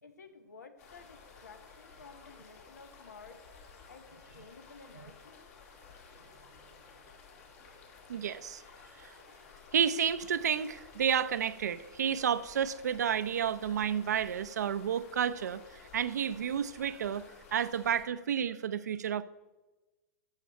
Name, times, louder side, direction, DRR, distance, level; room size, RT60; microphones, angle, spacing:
voice 1, 0.0-3.4 3.9-5.4, left 4 dB, 90° left, 9 dB, 1.3 m, -53 dB
sound 1, 0.8-18.0, left 5 dB, 60° left, 2.5 m, -54 dB
voice 2, 8.1-8.6 9.0-9.1 9.7-15.6 15.9-17.2 17.5-19.2, right 8 dB, 80° right, 15 dB, 0.6 m, -31 dB
12.5 x 7.3 x 4.3 m, 1.2 s
hypercardioid pair, 125°, 9 cm